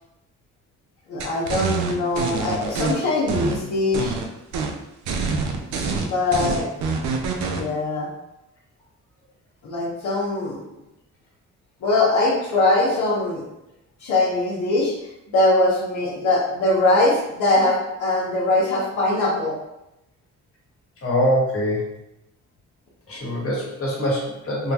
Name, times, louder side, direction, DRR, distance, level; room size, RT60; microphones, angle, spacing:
voice 1, 1.1-4.1 6.0-6.7 7.5-8.1 9.6-10.6 11.8-13.5 14.0-14.9 15.3-19.5, left 2 dB, 75° left, -8 dB, 1.0 m, -21 dB
sound 1, 1.2-2.9 3.3-4.2 4.5-4.7 5.1-7.6, right 4 dB, 70° right, 0.6 m, -25 dB
voice 2, 21.0-21.9 23.1-24.7, equal, 50° left, -4 dB, 1.5 m, -23 dB
3.7 x 2.2 x 2.8 m, 0.90 s
cardioid pair, 90°, 30 cm